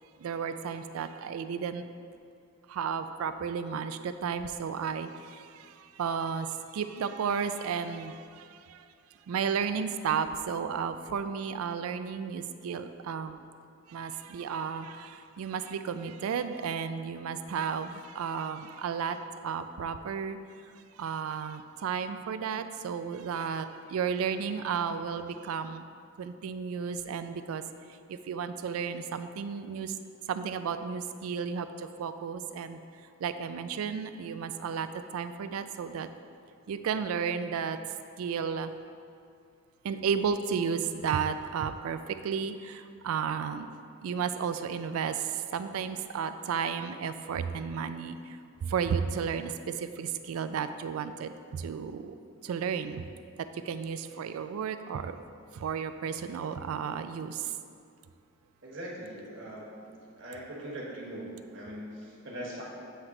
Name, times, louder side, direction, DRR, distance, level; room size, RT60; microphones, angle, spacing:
voice 1, 0.2-1.8 2.7-8.8 9.3-13.4 13.9-19.2 19.4-20.4 21.0-25.8 26.2-27.6 28.1-29.9 30.3-32.8 33.2-34.9 35.1-36.1 36.7-37.8 38.2-38.7 39.8-43.7 44.0-49.5 49.8-52.1 52.4-53.0 53.5-55.2 55.5-57.5, right 6 dB, 90° right, 10 dB, 0.3 m, -33 dB
voice 2, 58.6-59.8 60.2-62.6, right 1 dB, 60° right, -4 dB, 1.3 m, -41 dB
7.9 x 3.3 x 4.8 m, 2.4 s
head